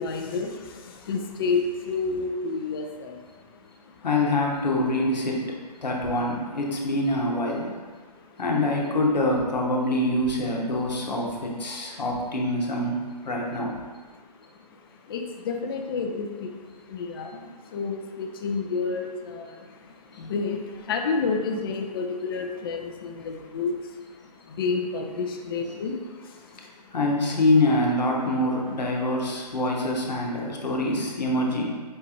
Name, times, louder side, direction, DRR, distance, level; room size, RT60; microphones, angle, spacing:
voice 1, 0.0-4.0 8.0-8.3 14.1-27.0 30.3-30.5, left 4 dB, 35° left, 4 dB, 0.4 m, -31 dB
voice 2, 4.0-7.7 8.4-13.0 13.2-13.7 26.9-31.7, left 1 dB, 85° left, -1 dB, 0.9 m, -25 dB
5.2 x 2.4 x 2.9 m, 1.4 s
hypercardioid pair, 140°, 21 cm